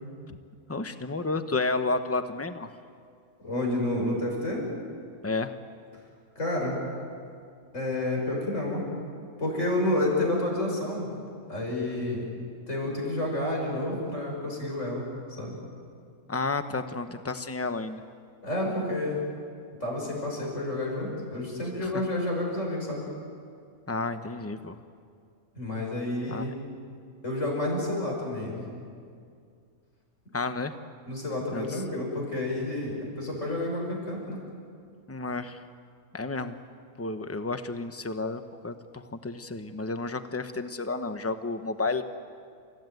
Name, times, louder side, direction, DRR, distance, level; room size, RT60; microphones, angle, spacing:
voice 1, 0.7-2.7 5.2-5.5 16.3-18.0 21.8-22.0 23.9-24.8 26.3-26.4 30.3-30.7 31.5-31.8 35.1-35.6 36.1-36.6 37.0-42.0, left 3 dB, 10° left, 9 dB, 0.8 m, -31 dB
voice 2, 3.4-4.7 6.4-6.8 7.7-8.8 9.4-11.2 11.5-12.3 12.7-15.0 15.4-15.6 18.4-19.2 19.8-23.0 25.5-26.5 27.2-28.7 31.1-34.4, left 1 dB, 55° left, -1 dB, 6.6 m, -30 dB
30.0 x 16.0 x 9.3 m, 2.3 s
omnidirectional pair, 1.5 m